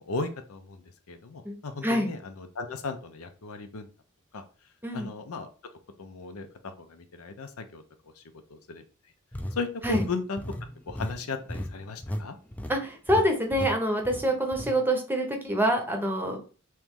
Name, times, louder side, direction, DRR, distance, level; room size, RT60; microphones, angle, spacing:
voice 1, 0.0-3.9 4.3-4.4 4.9-5.5 6.0-7.8 8.2-8.3 8.5-8.8 9.5-10.4 10.9-12.4, left 3 dB, 90° left, 8 dB, 0.6 m, -36 dB
sound 1, 9.3-12.3 12.5-12.8 13.1-13.2 13.5-13.7 14.1-14.7, equal, 5° left, 0.3 m, -35 dB
voice 2, 12.7-16.4, equal, 10° right, 3 dB, 0.7 m, -26 dB
3.1 x 3.0 x 3.6 m, 0.37 s
head